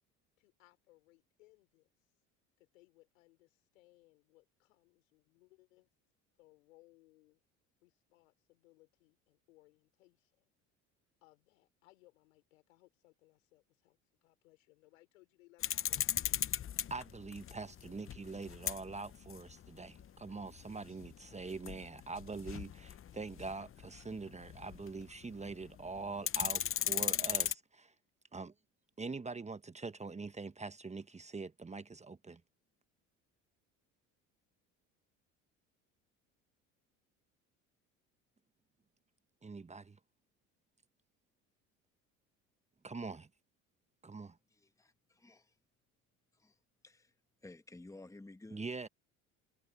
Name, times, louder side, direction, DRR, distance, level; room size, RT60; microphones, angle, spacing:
voice 1, 0.4-1.9 2.6-5.9 6.4-7.4 7.8-10.5 11.2-17.1, left 20 dB, 80° left, 4.4 m, -67 dB
sound 1, 15.6-25.2 25.5-25.6 25.9-27.5, left 10 dB, 35° left, 0.9 m, -37 dB
voice 2, 16.9-26.6 26.9-27.9 28.3-28.5 29.0-32.4 39.4-40.0 42.8-43.3 44.0-44.4 48.5-48.9, right 4 dB, 15° right, 1.2 m, -44 dB
voice 3, 44.5-45.5 46.4-46.5 46.8-47.1 47.4-48.6, left 2 dB, 10° left, 1.7 m, -54 dB
hypercardioid pair, 70°, 38 cm